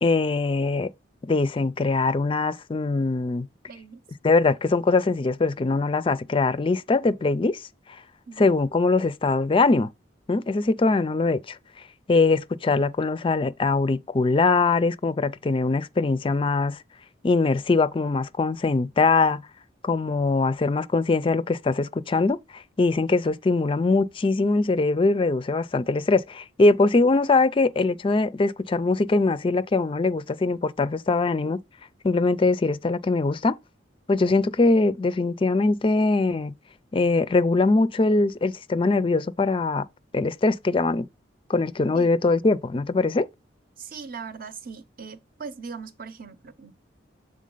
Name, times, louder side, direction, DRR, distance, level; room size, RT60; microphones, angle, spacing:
voice 1, 0.0-0.9 1.2-3.5 4.2-8.0 8.4-9.9 10.3-11.6 12.1-16.8 17.2-19.4 19.8-31.6 32.0-33.6 34.1-36.5 36.9-39.9 40.1-41.1 41.5-43.3, left 3 dB, 30° left, 0.4 m, -22 dB
voice 2, 3.7-4.0 8.3-8.5 41.9-42.2 43.8-46.7, right 5 dB, 50° right, 0.8 m, -39 dB
7.4 x 3.8 x 3.9 m
head